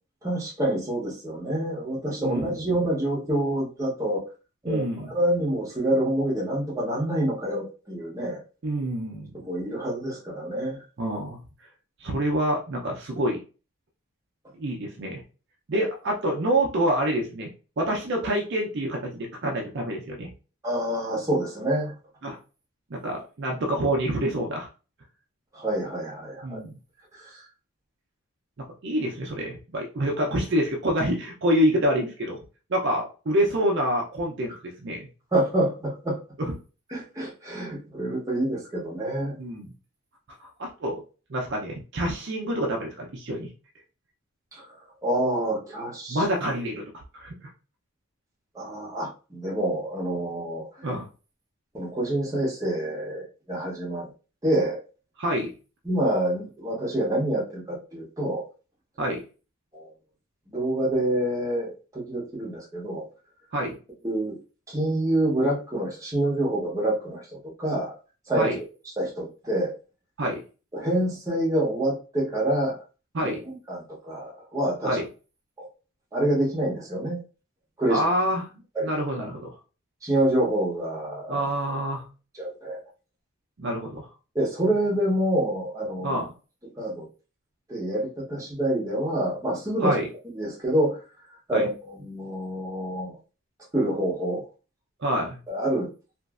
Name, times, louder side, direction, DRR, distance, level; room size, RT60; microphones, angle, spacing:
voice 1, 0.2-4.2 4.6-8.4 9.3-10.8 15.7-15.9 20.6-21.9 25.5-26.6 27.1-27.4 35.3-36.2 36.9-39.4 44.5-44.7 45.0-46.2 48.5-50.9 51.7-54.1 54.4-54.8 55.8-58.4 59.7-59.9 60.5-63.0 64.0-64.4 64.7-68.0 68.3-68.5 69.0-69.7 70.7-72.8 73.2-75.0 75.6-75.7 76.1-77.2 77.8-78.0 78.7-78.9 80.0-81.4 82.3-82.8 84.3-86.2 86.8-87.1 87.7-89.9 90.3-91.0 91.5-93.2 93.7-94.4 95.5-95.9, right 1 dB, 15° right, -4 dB, 0.9 m, -27 dB
voice 2, 2.2-2.6 4.7-5.1 8.6-9.3 11.0-11.4 12.0-13.4 14.6-15.2 15.7-20.3 22.2-22.4 22.9-24.7 26.4-26.8 28.6-32.4 32.7-35.1 36.4-36.5 39.4-39.7 40.4-41.0 41.3-43.5 46.1-47.5 50.8-51.1 55.2-55.5 59.0-59.2 63.5-63.8 68.4-68.6 70.2-70.4 73.1-73.4 74.8-75.1 77.9-78.5 78.8-79.6 81.3-82.0 83.6-84.1 86.0-86.3 89.8-90.1 91.5-91.7 95.0-95.4, equal, 50° right, 0 dB, 0.5 m, -27 dB
3.0 x 2.5 x 2.4 m, 0.34 s
head